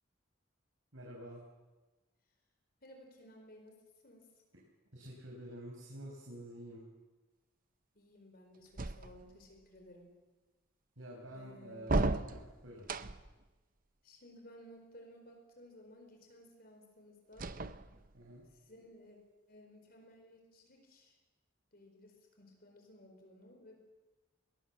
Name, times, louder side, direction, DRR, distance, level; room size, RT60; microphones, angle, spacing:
voice 1, 0.9-1.4 4.9-6.8 11.0-12.9 18.1-18.5, right 1 dB, 85° right, -2 dB, 5.1 m, -49 dB
voice 2, 2.8-4.3 7.9-10.1 11.3-11.9 14.0-17.6 18.7-19.2 19.5-21.2 21.7-23.8, equal, 50° left, 3 dB, 4.5 m, -57 dB
sound 1, 8.8-9.5 11.8-13.4 17.3-18.3, right 2 dB, 45° right, 0.8 m, -35 dB
22.0 x 20.5 x 7.5 m, 1.2 s
head